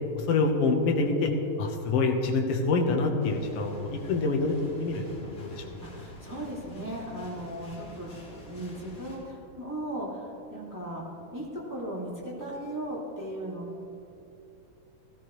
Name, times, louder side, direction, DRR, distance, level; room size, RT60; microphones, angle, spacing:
voice 1, 0.2-1.3 1.6-5.6, left 3 dB, 80° left, 2 dB, 1.3 m, -26 dB
sound 1, 3.2-9.2, left 1 dB, 45° left, 3.4 m, -47 dB
voice 2, 5.8-8.1 8.4-11.0 11.3-13.6, right 1 dB, 10° right, -6 dB, 1.3 m, -37 dB
18.5 x 14.0 x 3.1 m, 2.8 s
omnidirectional pair, 4.3 m